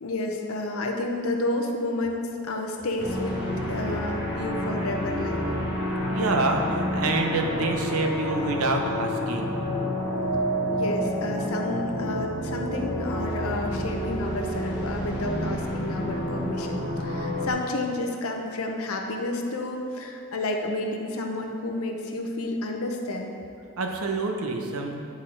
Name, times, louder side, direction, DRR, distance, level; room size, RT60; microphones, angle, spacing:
voice 1, 0.0-3.4 3.7-5.4 10.7-23.4, left 2 dB, 70° left, 2 dB, 0.7 m, -30 dB
sound 1, 3.0-17.5, equal, 5° right, 1.4 m, -29 dB
voice 2, 6.1-9.6 23.8-25.0, right 3 dB, 70° right, 3 dB, 0.7 m, -27 dB
9.5 x 4.2 x 3.8 m, 2.6 s
head